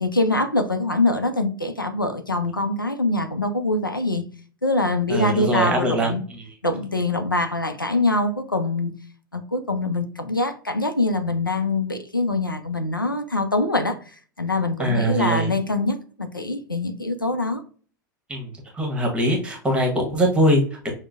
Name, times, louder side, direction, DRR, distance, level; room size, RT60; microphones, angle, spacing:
voice 1, 0.0-4.2 4.6-6.2 6.6-8.9 9.3-14.0 14.4-17.6, left 2 dB, 90° left, 0.5 m, -24 dB
voice 2, 5.1-6.5 14.8-15.5 18.3-20.9, right 1 dB, 10° right, 1.2 m, -22 dB
5.9 x 2.1 x 2.3 m
figure-of-eight pair, 90°, 11 cm